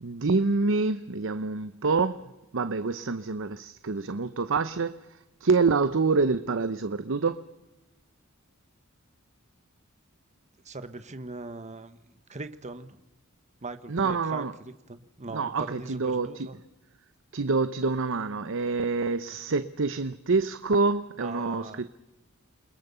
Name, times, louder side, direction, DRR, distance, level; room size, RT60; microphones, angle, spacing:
voice 1, 0.0-7.5 13.9-14.5 15.3-16.5 17.3-21.9, right 4 dB, 60° right, 0.8 m, -27 dB
voice 2, 10.6-12.0 12.3-13.0 13.6-16.6 21.2-21.9, right 3 dB, 35° right, 1.2 m, -40 dB
29.0 x 21.0 x 6.9 m
head